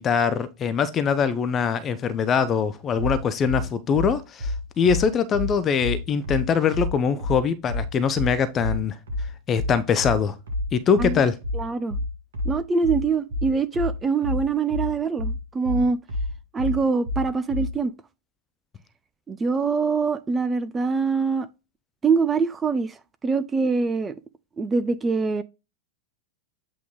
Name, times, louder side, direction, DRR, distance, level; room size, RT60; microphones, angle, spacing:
voice 1, 0.0-9.0 9.5-10.3 10.7-11.4, left 6 dB, 25° left, 0.6 m, -23 dB
sound 1, 3.0-17.8, left 1 dB, 60° right, 1.5 m, -28 dB
voice 2, 11.5-12.0 12.4-16.0 16.5-17.9 19.3-21.5 22.0-24.2 24.6-25.4, right 4 dB, 15° right, 0.4 m, -24 dB
8.2 x 3.0 x 3.8 m
figure-of-eight pair, 90°, 0 cm